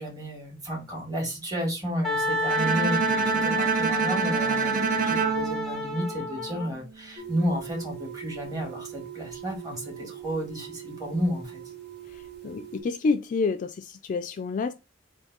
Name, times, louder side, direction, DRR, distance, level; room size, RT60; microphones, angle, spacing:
voice 1, 0.0-11.6, equal, 20° right, 1.8 m, -32 dB
Wind instrument woodwind instrument, 2.0-6.7, left 1 dB, ahead, 0.9 m, -29 dB
Bowed string instrument, 2.5-6.6, right 7 dB, 45° right, 0.4 m, -27 dB
sound 1, 7.2-12.8, right 11 dB, 60° right, 2.3 m, -41 dB
voice 2, 12.4-14.7, left 4 dB, 45° left, 0.3 m, -28 dB
3.6 x 2.7 x 3.9 m
head